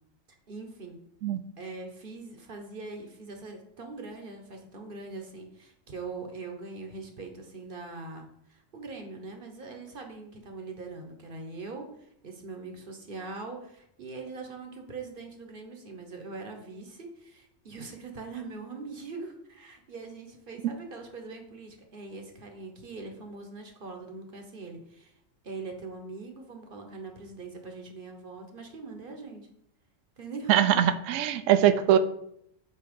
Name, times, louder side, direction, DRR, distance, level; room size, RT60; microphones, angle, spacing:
voice 1, 0.5-1.0 1.6-25.1 25.4-29.5 30.2-30.6, right 3 dB, 45° right, 4 dB, 1.1 m, -42 dB
voice 2, 30.5-32.0, right 11 dB, 80° right, 11 dB, 0.9 m, -22 dB
8.5 x 2.9 x 5.1 m, 0.74 s
omnidirectional pair, 1.3 m